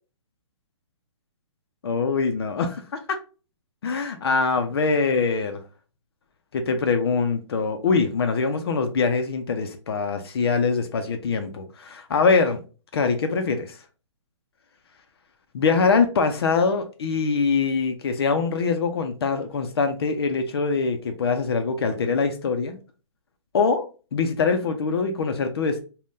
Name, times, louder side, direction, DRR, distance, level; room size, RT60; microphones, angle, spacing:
voice 1, 1.8-3.0 3.8-5.6 6.5-12.6 12.9-13.8 15.5-22.8 23.5-25.8, left 4 dB, 50° left, 0.5 m, -23 dB
2.5 x 2.2 x 3.4 m
hypercardioid pair, 160°, 16 cm